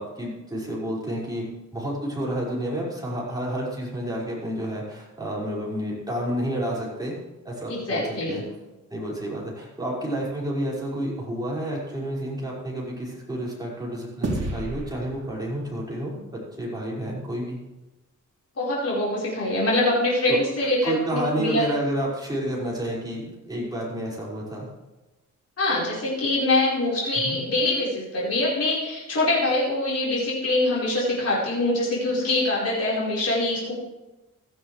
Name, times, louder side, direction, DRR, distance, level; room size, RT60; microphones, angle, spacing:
voice 1, 0.0-1.5 1.7-7.1 7.4-8.4 8.9-16.1 16.6-17.6 20.3-20.4 20.8-24.7 27.3-27.4, right 1 dB, 10° right, -5 dB, 5.3 m, -30 dB
voice 2, 7.7-8.4 18.6-21.7 25.6-33.7, left 2 dB, 50° left, -7 dB, 4.7 m, -24 dB
sound 1, 14.2-16.8, right 2 dB, 50° right, 3.1 m, -33 dB
17.0 x 13.5 x 3.3 m, 1.1 s
wide cardioid pair, 150°, 32 cm